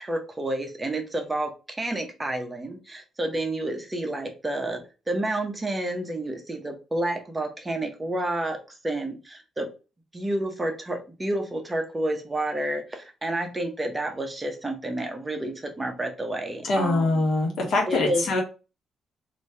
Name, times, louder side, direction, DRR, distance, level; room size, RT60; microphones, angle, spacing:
voice 1, 0.0-1.5 1.8-4.8 5.1-8.6 8.8-9.7 10.1-17.2 17.9-18.2, right 1 dB, 20° right, 4 dB, 0.9 m, -29 dB
voice 2, 16.6-18.4, left 2 dB, 70° left, 1 dB, 1.3 m, -23 dB
3.0 x 2.7 x 3.3 m, 0.31 s
cardioid pair, 90°, 0 cm